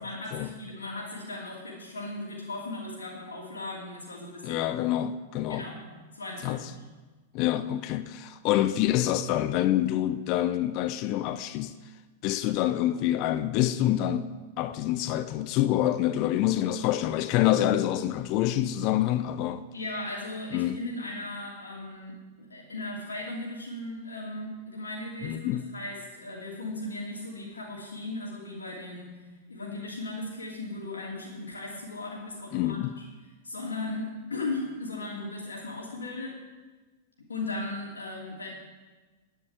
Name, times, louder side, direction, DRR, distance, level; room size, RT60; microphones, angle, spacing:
voice 1, 0.0-4.7 5.5-5.8 6.1-6.7 19.7-25.5 25.7-29.2 29.5-32.8 33.4-36.3 37.2-38.5, left 2 dB, 80° left, 2.8 m, -37 dB
voice 2, 4.4-5.7 6.4-6.6 7.3-11.7 12.2-19.6 20.5-20.8 25.2-25.7 32.5-32.9, left 13 dB, 40° left, 0.7 m, -26 dB
9.8 x 9.8 x 8.3 m
figure-of-eight pair, 95°, 0 cm